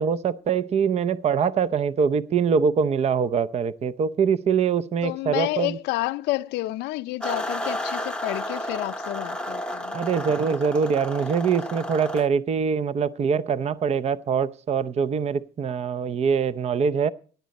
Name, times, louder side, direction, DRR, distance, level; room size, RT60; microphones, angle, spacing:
voice 1, 0.0-5.8 9.9-17.1, right 6 dB, 40° right, 0.6 m, -23 dB
voice 2, 5.0-10.0, left 18 dB, 85° left, 0.5 m, -29 dB
sound 1, 7.2-12.3, equal, 5° left, 0.8 m, -32 dB
16.5 x 10.5 x 4.1 m
cardioid pair, 110°, 17 cm